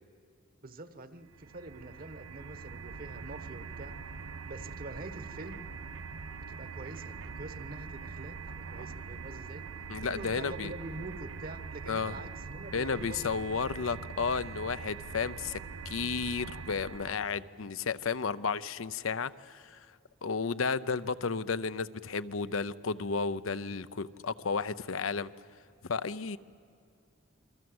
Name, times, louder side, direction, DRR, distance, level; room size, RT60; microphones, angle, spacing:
voice 1, 0.6-4.0 4.4-5.6 6.3-9.7 10.0-13.8, right 2 dB, 45° right, 11 dB, 1.3 m, -45 dB
sound 1, 1.3-17.5, right 5 dB, 80° right, 0.9 m, -43 dB
voice 2, 9.9-10.7 11.9-12.1 12.7-15.6 15.8-19.9 20.2-25.3 25.9-26.4, left 5 dB, 80° left, 14 dB, 0.7 m, -33 dB
28.0 x 24.0 x 7.9 m, 2.4 s
head